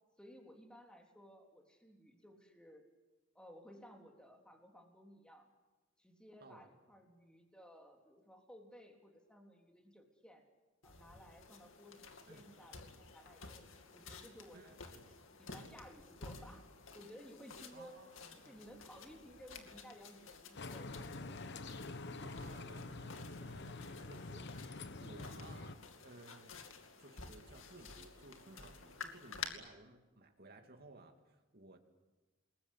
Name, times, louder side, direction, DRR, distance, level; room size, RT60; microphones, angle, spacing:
voice 1, 0.2-2.8 3.3-5.5 6.0-10.4 10.8-13.7 13.9-15.0 15.4-16.6 16.9-18.0 18.4-21.5, equal, 5° left, 2 dB, 3.4 m, -57 dB
sound 1, 10.8-29.5, left 5 dB, 85° left, 2.5 m, -53 dB
voice 2, 14.5-15.0 17.7-18.6 22.2-25.8 26.0-26.6 27.0-31.8, right 2 dB, 55° right, 4 dB, 2.7 m, -58 dB
sound 2, 20.6-25.8, left 2 dB, 60° left, 1.1 m, -46 dB
29.0 x 21.0 x 8.5 m, 1.1 s
head